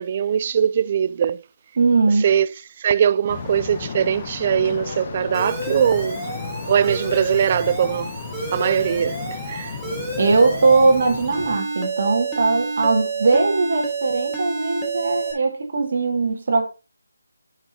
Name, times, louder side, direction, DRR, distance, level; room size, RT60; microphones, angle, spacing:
voice 1, 0.0-1.4 2.2-2.5 2.8-6.2 6.7-8.1 8.5-9.8, right 8 dB, 30° right, 0.3 m, -21 dB
voice 2, 1.8-2.3 10.2-16.6, right 3 dB, 45° right, 2.1 m, -19 dB
sound 1, 3.3-11.6, left 5 dB, 25° left, 0.8 m, -34 dB
sound 2, 4.4-11.0, left 3 dB, 60° left, 2.1 m, -41 dB
Alarm, 5.3-15.3, right 3 dB, 5° right, 1.6 m, -29 dB
10.0 x 6.2 x 2.8 m
figure-of-eight pair, 170°, 0 cm